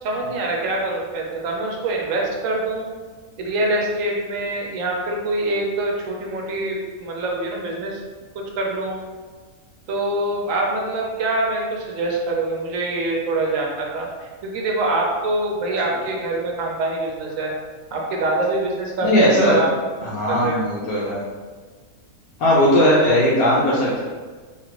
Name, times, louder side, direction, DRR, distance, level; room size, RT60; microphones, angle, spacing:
voice 1, 0.0-2.9 3.4-8.0 8.3-9.0 9.9-17.5 17.9-19.7 20.3-20.6, right 2 dB, 70° right, -1 dB, 1.0 m, -24 dB
voice 2, 19.0-19.6 20.0-21.2 22.4-24.0, equal, 85° left, -8 dB, 1.2 m, -18 dB
3.2 x 2.5 x 2.9 m, 1.4 s
omnidirectional pair, 1.5 m